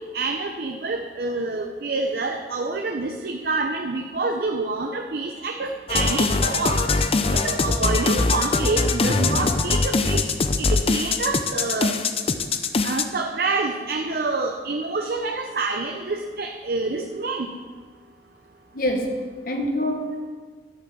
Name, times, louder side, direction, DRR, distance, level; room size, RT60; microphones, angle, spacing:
voice 1, 0.1-6.8 7.3-10.3 10.6-11.9 12.8-17.5, right 3 dB, 60° right, 3 dB, 0.7 m, -27 dB
sound 1, 5.9-13.0, left 3 dB, 35° left, 0.5 m, -22 dB
voice 2, 18.7-20.3, equal, 55° left, 3 dB, 1.4 m, -27 dB
11.0 x 6.1 x 7.1 m, 1.5 s
head